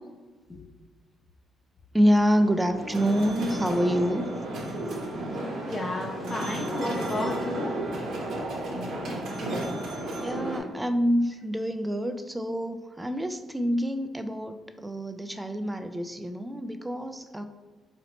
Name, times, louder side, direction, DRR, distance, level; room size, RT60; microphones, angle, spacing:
voice 1, 1.9-4.3 10.2-17.4, equal, 10° right, 8 dB, 0.3 m, -26 dB
sound 1, 2.3-10.6, right 1 dB, 65° right, 0.9 m, -33 dB
voice 2, 5.6-7.8, left 1 dB, 30° left, 0 dB, 0.8 m, -32 dB
4.0 x 2.8 x 3.0 m, 1.3 s
cardioid pair, 90°, 0 cm